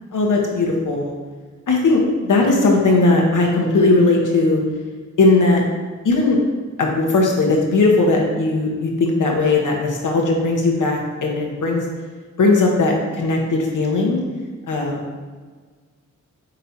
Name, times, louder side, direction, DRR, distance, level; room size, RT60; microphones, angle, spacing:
voice 1, 0.1-1.1 1.7-4.6 5.2-5.6 6.0-6.4 6.8-11.9 12.4-14.2 14.7-15.0, left 3 dB, 70° left, 0 dB, 1.3 m, -18 dB
5.5 x 4.2 x 4.3 m, 1.5 s
cardioid pair, 55°, 32 cm